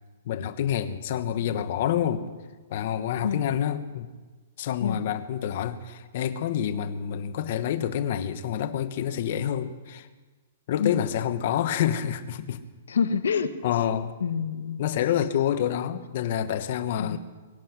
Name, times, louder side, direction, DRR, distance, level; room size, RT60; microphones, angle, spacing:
voice 1, 0.2-2.2 2.7-4.1 4.6-10.1 10.7-12.6 13.6-14.1 14.8-17.2, left 10 dB, 50° left, 9 dB, 1.3 m, -27 dB
voice 2, 12.9-13.5 14.2-14.8 17.0-17.2, left 6 dB, 90° left, 10 dB, 1.3 m, -27 dB
23.5 x 10.0 x 6.2 m, 1.3 s
hypercardioid pair, 155°, 0 cm